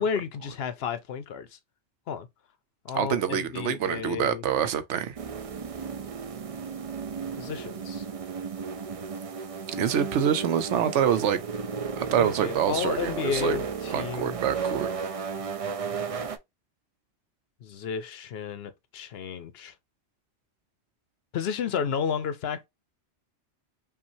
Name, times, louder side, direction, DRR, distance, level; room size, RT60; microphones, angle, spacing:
voice 1, 0.0-1.6 2.1-2.3 2.8-4.4 7.4-8.1 12.2-14.4 17.6-19.7 21.3-22.6, left 7 dB, 65° left, 0.8 m, -32 dB
voice 2, 2.9-5.2 9.8-11.4 12.0-13.6 13.9-14.9, right 9 dB, 85° right, 1.0 m, -26 dB
sound 1, 5.2-16.4, right 5 dB, 45° right, 0.4 m, -34 dB
5.6 x 2.5 x 2.6 m
omnidirectional pair, 1.2 m